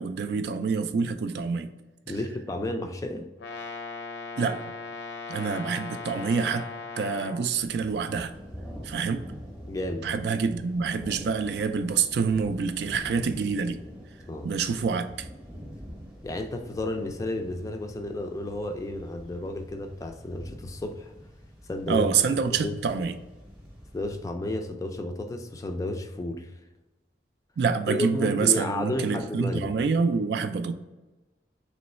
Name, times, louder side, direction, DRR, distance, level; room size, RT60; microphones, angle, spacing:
voice 1, 0.0-1.7 2.1-2.2 4.4-4.6 5.3-6.7 7.0-8.3 8.8-9.2 10.0-13.8 14.4-15.0 21.9-23.1 27.6-30.7, right 5 dB, 70° right, 10 dB, 0.3 m, -26 dB
voice 2, 2.1-3.3 9.7-10.1 14.3-14.5 16.2-21.1 21.7-22.1 22.4-22.8 23.9-26.5 27.9-29.7, left 1 dB, 20° left, 6 dB, 0.3 m, -32 dB
Brass instrument, 3.4-7.5, left 4 dB, 85° left, 0.5 m, -38 dB
sound 1, 7.6-24.2, equal, 5° right, 0.8 m, -45 dB
3.1 x 3.0 x 4.1 m, 1.1 s
head